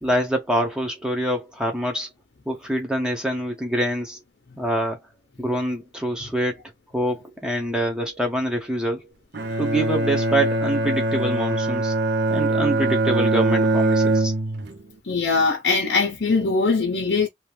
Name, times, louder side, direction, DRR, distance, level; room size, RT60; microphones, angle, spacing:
voice 1, 0.0-2.1 2.5-4.2 4.6-5.0 5.4-6.6 6.9-9.1 9.6-11.9 12.3-14.3, right 1 dB, 5° right, 0.8 m, -25 dB
Bowed string instrument, 9.3-14.8, right 2 dB, 70° right, 0.7 m, -22 dB
voice 2, 15.0-17.3, left 4 dB, 70° left, 0.7 m, -21 dB
2.9 x 2.6 x 3.2 m
head